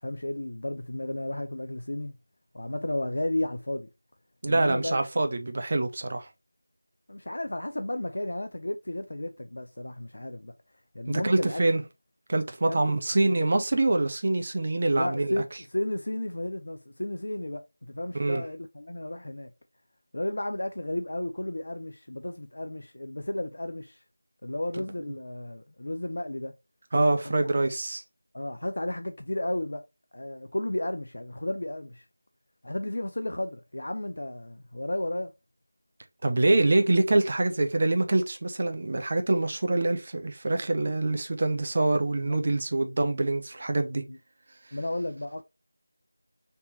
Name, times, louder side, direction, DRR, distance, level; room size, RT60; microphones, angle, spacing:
voice 1, 0.0-2.1 2.5-3.9 4.5-5.1 7.1-10.5 10.9-11.6 12.7-13.0 14.9-19.5 20.1-24.0 24.4-26.5 27.2-27.3 28.3-29.8 30.1-32.0 32.6-35.3 42.2-42.4 44.1-44.2 44.7-45.4, left 1 dB, 50° left, 0.3 m, -33 dB
voice 2, 4.4-6.3 11.1-11.8 12.3-15.4 18.1-18.4 26.9-28.0 36.2-44.0, right 2 dB, 30° right, 0.4 m, -25 dB
3.3 x 2.8 x 2.6 m
figure-of-eight pair, 170°, 0 cm